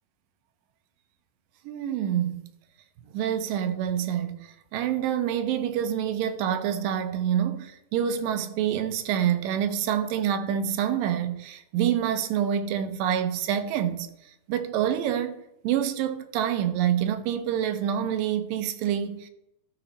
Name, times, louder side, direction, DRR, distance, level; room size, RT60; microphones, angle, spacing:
voice 1, 1.7-2.4 3.1-14.1 14.5-15.3 15.6-19.3, right 9 dB, 85° right, 2.4 m, -27 dB
13.0 x 5.0 x 4.0 m
omnidirectional pair, 3.9 m